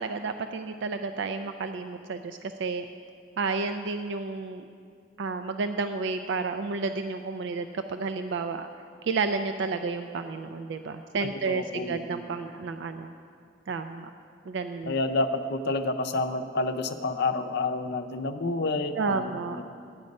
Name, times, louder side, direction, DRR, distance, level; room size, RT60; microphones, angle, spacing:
voice 1, 0.0-2.9 3.4-4.7 5.2-8.7 9.0-13.1 13.7-14.1 14.5-14.9 19.0-19.6, right 4 dB, 70° right, 8 dB, 0.4 m, -31 dB
voice 2, 11.5-12.1 14.9-19.6, left 3 dB, 60° left, 8 dB, 0.6 m, -29 dB
12.0 x 9.5 x 5.3 m, 2.4 s
head